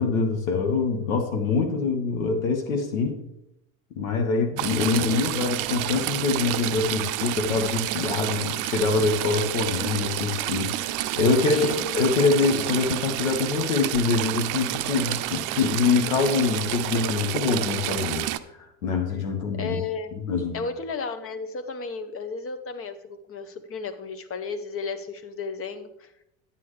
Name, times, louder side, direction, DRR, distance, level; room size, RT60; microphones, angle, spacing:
voice 1, 0.0-3.2 3.9-18.3 18.8-19.8 20.1-20.6, left 4 dB, 80° left, 3 dB, 1.6 m, -24 dB
Stream / Trickle dribble, 4.6-18.4, right 15 dB, 50° right, 0.6 m, -29 dB
voice 2, 11.5-11.9 19.5-20.1 20.5-26.1, left 4 dB, 35° left, 10 dB, 1.0 m, -33 dB
9.3 x 9.1 x 3.3 m, 0.81 s
hypercardioid pair, 80°, 41 cm